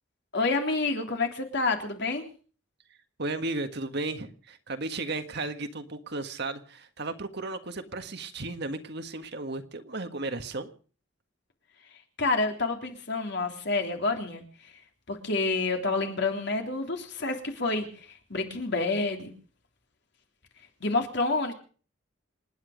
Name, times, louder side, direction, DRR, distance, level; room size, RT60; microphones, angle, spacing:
voice 1, 0.3-2.2 12.2-14.7 15.1-19.3 20.8-21.5, left 3 dB, 55° left, 4 dB, 3.3 m, -28 dB
voice 2, 3.2-10.7, right 2 dB, 55° right, 8 dB, 1.6 m, -34 dB
27.5 x 10.0 x 5.1 m, 0.41 s
head